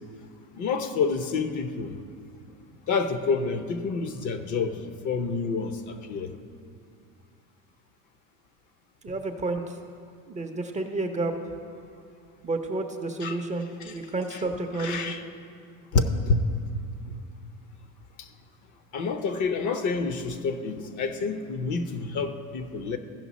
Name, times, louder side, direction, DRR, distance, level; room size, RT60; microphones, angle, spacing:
voice 1, 0.5-1.9 2.9-4.8 5.0-6.3 13.2-13.4 13.8-14.0 14.3-14.4 14.8-15.2 15.9-16.4 18.2-18.3 18.9-23.0, left 4 dB, 45° left, 8 dB, 0.8 m, -28 dB
voice 2, 9.0-9.8 10.3-11.3 12.4-15.1, right 2 dB, 20° right, 4 dB, 0.6 m, -30 dB
15.0 x 5.5 x 4.1 m, 2.3 s
supercardioid pair, 105°, 41 cm